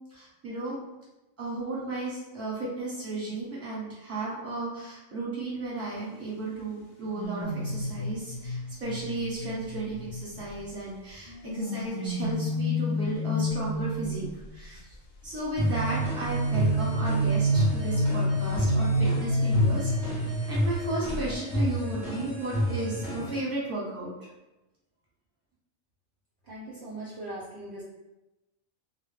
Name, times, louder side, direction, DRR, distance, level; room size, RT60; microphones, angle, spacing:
voice 1, 0.1-0.8 1.4-14.3 14.5-14.8 15.2-24.1, right 2 dB, 10° right, -8 dB, 0.9 m, -34 dB
sound 1, 7.0-10.7 11.3-14.5 15.6-20.8 21.1-21.3, right 1 dB, 70° left, 0.8 m, -29 dB
sound 2, 15.6-23.4, left 1 dB, 25° left, 0.4 m, -30 dB
voice 2, 26.5-27.8, right 1 dB, 60° right, -6 dB, 0.7 m, -40 dB
2.2 x 2.0 x 3.3 m, 1.0 s
omnidirectional pair, 1.4 m